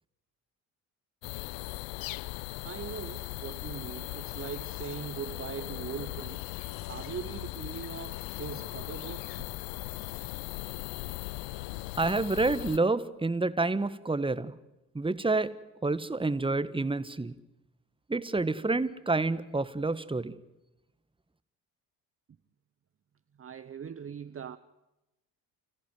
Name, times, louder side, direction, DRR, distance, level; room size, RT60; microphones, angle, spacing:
sound 1, 1.2-12.8, left 19 dB, 65° left, 0.7 m, -38 dB
voice 1, 2.6-6.5 6.9-9.5 23.4-24.6, right 7 dB, 30° right, 0.9 m, -41 dB
voice 2, 12.0-14.5 14.9-15.5 15.8-17.3 18.1-20.3, right 3 dB, 10° right, 1.4 m, -28 dB
29.0 x 15.0 x 9.3 m
hypercardioid pair, 55°, 47 cm